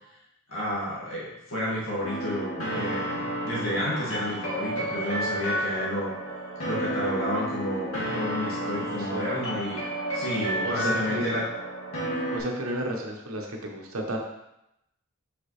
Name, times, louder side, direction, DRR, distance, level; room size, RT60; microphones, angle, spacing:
voice 1, 0.5-6.1 6.6-9.8 10.1-11.4, left 1 dB, 70° left, -6 dB, 2.0 m, -31 dB
sound 1, 2.0-12.4, right 1 dB, 85° left, 2.3 m, -31 dB
voice 2, 8.8-9.2 10.6-11.4 12.3-14.2, right 1 dB, 80° right, 0 dB, 1.2 m, -32 dB
6.7 x 5.1 x 3.3 m, 0.84 s
head